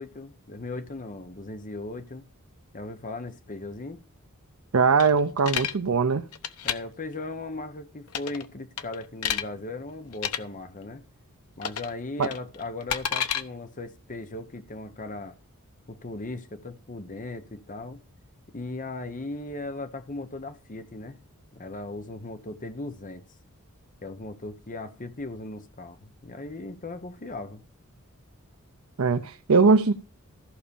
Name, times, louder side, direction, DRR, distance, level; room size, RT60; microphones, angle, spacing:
voice 1, 0.0-2.2 2.7-4.0 6.6-11.0 11.6-15.4 15.9-18.0 18.5-21.2 21.5-23.2 24.0-27.6, left 2 dB, 40° left, 1.0 m, -37 dB
voice 2, 4.7-6.3 12.2-12.3 29.0-29.9, right 4 dB, 70° right, 0.7 m, -21 dB
sound 1, 5.0-5.7 6.3-6.8 8.1-8.4 8.8-9.4 10.1-10.4 11.6-11.9 12.2-13.4, left 8 dB, 90° left, 0.9 m, -29 dB
14.5 x 5.1 x 7.0 m
head